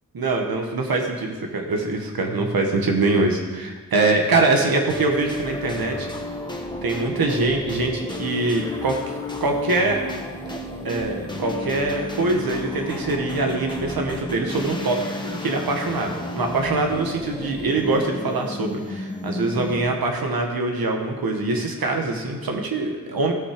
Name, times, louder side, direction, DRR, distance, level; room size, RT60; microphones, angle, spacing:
voice 1, 0.1-6.1 6.8-10.0 10.8-15.0 15.4-23.3, right 2 dB, 90° right, 2 dB, 1.3 m, -23 dB
sound 1, 4.9-20.0, left 1 dB, 15° left, 1.2 m, -32 dB
16.5 x 5.7 x 5.0 m, 1.4 s
wide cardioid pair, 115°, 35 cm